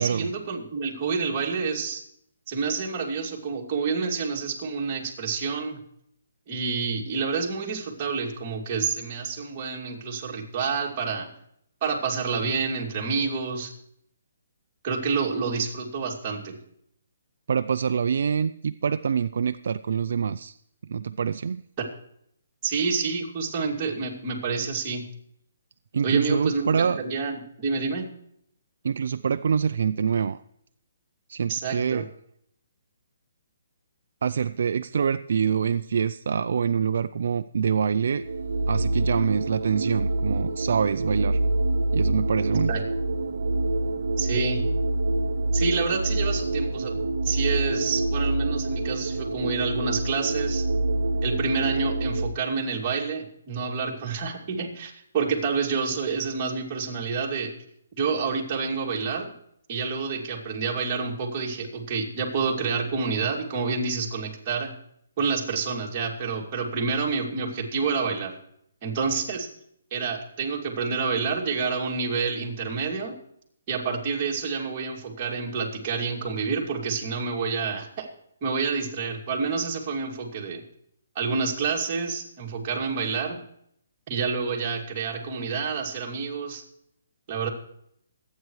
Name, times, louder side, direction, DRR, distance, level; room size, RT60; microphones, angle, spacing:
voice 1, 0.0-2.0 2.5-5.8 6.5-11.3 11.8-13.7 14.8-16.6 22.6-25.0 26.0-28.1 31.5-32.0 42.7-42.8 44.2-44.6 45.5-46.9 47.2-50.6 51.2-57.5 58.0-59.3 59.7-64.7 65.2-68.4 68.8-69.5 69.9-73.2 73.7-78.1 78.4-80.6 81.1-83.4 84.1-86.6 87.3-87.5, right 5 dB, 25° right, -3 dB, 2.6 m, -28 dB
voice 2, 17.5-20.6 20.8-21.6 25.9-27.0 28.8-30.4 31.3-32.1 34.2-38.2 38.7-41.4 41.9-42.7, right 6 dB, 60° right, 11 dB, 0.4 m, -25 dB
sound 1, 37.8-52.3, right 2 dB, 75° right, 0.9 m, -26 dB
24.0 x 9.3 x 3.2 m, 0.71 s
hypercardioid pair, 165°, 0 cm